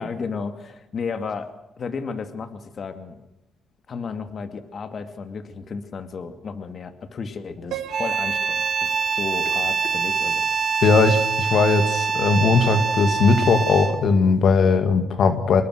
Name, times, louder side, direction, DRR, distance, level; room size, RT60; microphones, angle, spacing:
voice 1, 0.0-1.5 1.8-3.2 3.9-10.5, left 5 dB, 50° left, 9 dB, 2.3 m, -33 dB
Piano, 7.7-10.7, right 10 dB, 90° right, 2.2 m, -38 dB
sound 1, 7.9-14.1, right 5 dB, 50° right, 2.4 m, -24 dB
voice 2, 10.8-15.6, left 4 dB, 65° left, 8 dB, 2.2 m, -18 dB
25.5 x 21.0 x 6.5 m, 0.92 s
cardioid pair, 90°, 0 cm